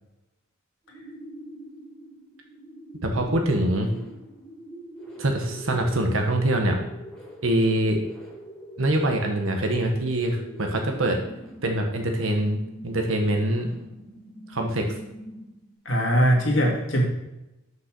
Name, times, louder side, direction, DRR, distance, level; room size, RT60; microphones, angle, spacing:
sound 1, 0.8-15.7, right 1 dB, ahead, 2.5 m, -43 dB
voice 1, 3.0-3.9 5.2-6.9 7.4-8.0 8.8-11.2 11.6-13.7 14.5-14.8, right 1 dB, 80° right, 3 dB, 1.3 m, -24 dB
voice 2, 15.9-17.0, equal, 65° left, -1 dB, 2.2 m, -21 dB
6.5 x 5.5 x 6.1 m, 0.93 s
head